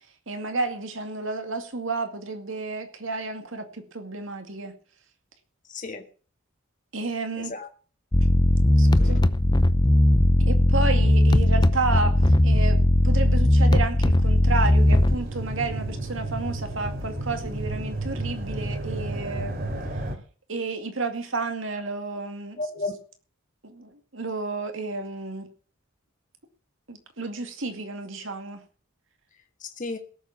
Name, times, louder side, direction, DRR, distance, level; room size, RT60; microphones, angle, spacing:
voice 1, 0.3-4.7 6.9-7.5 8.8-9.2 10.5-19.5 20.5-22.6 23.6-25.5 26.9-28.6, right 3 dB, 65° right, 7 dB, 2.3 m, -31 dB
voice 2, 5.7-6.1 7.4-7.7 8.9-9.2 22.6-22.9 29.6-30.0, left 3 dB, 40° left, 5 dB, 1.7 m, -33 dB
sound 1, 8.1-15.2, left 1 dB, 20° left, 0.7 m, -18 dB
sound 2, 14.4-20.2, right 1 dB, 50° right, 2.9 m, -32 dB
17.0 x 7.3 x 7.1 m, 0.41 s
head